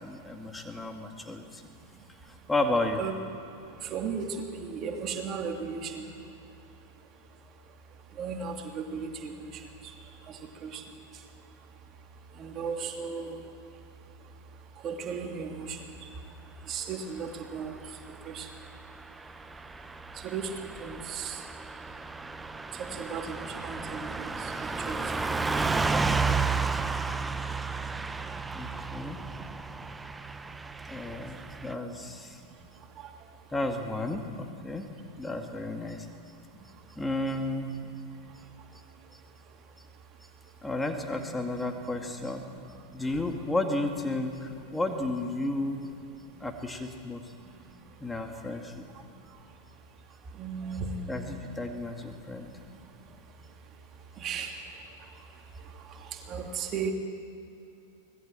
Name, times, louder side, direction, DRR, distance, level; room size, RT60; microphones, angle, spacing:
voice 1, 0.0-1.6 2.2-3.0 28.5-29.2 30.9-32.4 33.5-34.9 35.2-36.1 37.0-37.7 39.1-39.2 40.6-42.4 42.9-45.8 46.4-47.3 48.0-48.8 51.1-52.5, left 2 dB, 10° left, 4 dB, 2.1 m, -32 dB
voice 2, 3.8-6.1 8.2-9.9 10.3-10.8 12.4-13.4 14.8-16.1 16.7-17.7 18.1-18.5 20.2-21.4 22.7-25.4 33.0-33.1 50.4-51.4 54.2-54.6 55.7-56.9, right 6 dB, 30° right, 3 dB, 2.8 m, -36 dB
Car passing by / Truck, 18.7-31.7, right 4 dB, 10° right, 0.9 m, -32 dB
25.0 x 19.0 x 7.6 m, 2.9 s
figure-of-eight pair, 90°, 0 cm